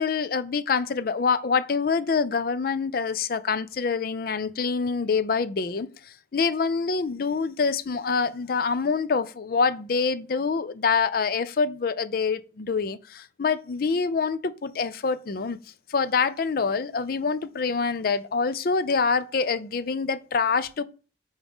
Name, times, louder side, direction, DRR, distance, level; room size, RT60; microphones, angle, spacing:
voice 1, 0.0-15.6 15.9-20.8, left 5 dB, 55° left, 0.4 m, -26 dB
9.0 x 3.6 x 3.5 m
head